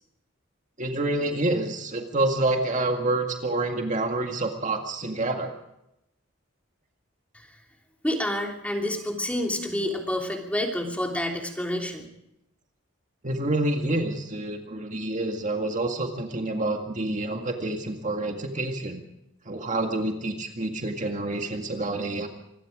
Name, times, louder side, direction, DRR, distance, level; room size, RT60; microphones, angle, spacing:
voice 1, 0.8-5.6 13.2-19.0 19.5-22.3, right 2 dB, 40° right, 3 dB, 1.9 m, -28 dB
voice 2, 8.0-12.0, left 1 dB, 5° left, 1 dB, 3.1 m, -28 dB
25.5 x 21.0 x 5.1 m, 0.85 s
head